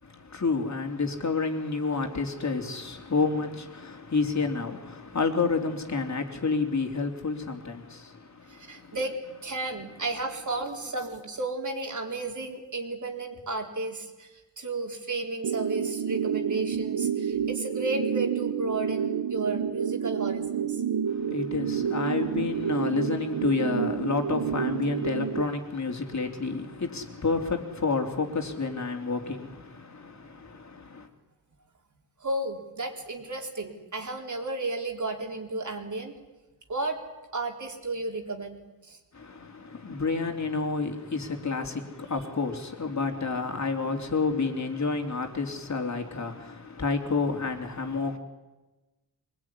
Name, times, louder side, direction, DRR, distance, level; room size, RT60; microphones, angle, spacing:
voice 1, 0.0-9.0 21.1-31.1 39.1-48.2, left 4 dB, 45° left, 3.5 m, -30 dB
voice 2, 8.5-9.2 9.4-14.3 14.6-20.8 32.2-36.1 36.7-37.0 37.3-38.6 38.8-39.0, right 2 dB, 50° right, 4.1 m, -33 dB
sound 1, 15.4-25.4, right 8 dB, 80° right, 1.0 m, -29 dB
24.5 x 20.5 x 9.9 m
wide cardioid pair, 100°, 38 cm